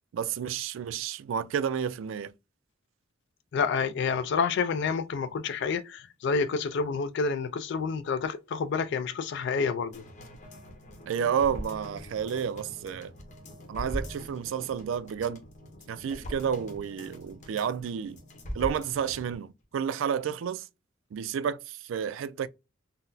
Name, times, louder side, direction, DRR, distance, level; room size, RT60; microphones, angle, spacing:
voice 1, 0.1-2.3 11.1-13.1 13.7-15.4 15.9-18.2 18.5-20.6 21.1-22.5, right 7 dB, 75° right, 0.3 m, -31 dB
voice 2, 3.5-10.0, left 5 dB, 65° left, 0.4 m, -29 dB
sound 1, 9.9-19.4 19.7-19.8, equal, 40° left, 0.8 m, -42 dB
3.9 x 2.0 x 2.6 m
head